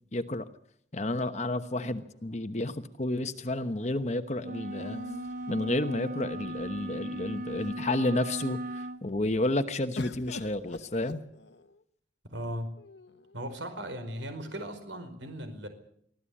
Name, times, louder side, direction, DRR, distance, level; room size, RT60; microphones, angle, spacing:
voice 1, 0.1-0.4 0.9-5.0 5.5-8.6 9.0-11.2, left 1 dB, 35° left, 8 dB, 1.0 m, -31 dB
sound 1, 1.6-2.7 4.7-6.3 7.0-7.1 7.4-8.0 10.0-11.8 12.8-13.5, left 2 dB, 70° left, 1.2 m, -45 dB
sound 2, 4.4-9.0, right 1 dB, 45° right, 1.0 m, -37 dB
voice 2, 12.3-12.7 13.3-15.7, equal, 85° right, 8 dB, 4.9 m, -37 dB
24.0 x 15.5 x 8.6 m, 0.67 s
head